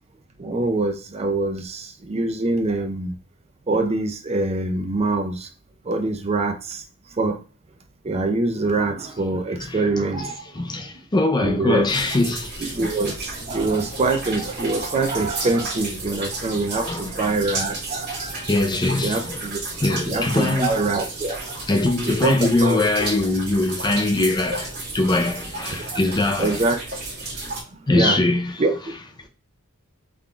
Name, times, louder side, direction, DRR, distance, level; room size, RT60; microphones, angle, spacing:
voice 1, 0.4-3.2 3.7-5.5 5.9-6.8 7.2-7.4 8.0-10.4 11.4-11.9 12.6-18.5 19.0-19.6 20.0-21.5 22.0-22.8 25.7-26.0 26.4-26.8 27.9-28.2 28.6-28.7, right 3 dB, 30° right, 0.5 m, -24 dB
voice 2, 9.6-12.7 14.4-14.5 16.8-17.1 18.5-19.5 19.8-20.8 21.7-26.7 27.9-29.3, left 2 dB, 20° left, 0.5 m, -23 dB
sound 1, 11.9-27.6, right 2 dB, 50° right, 1.7 m, -32 dB
3.7 x 3.6 x 2.3 m
head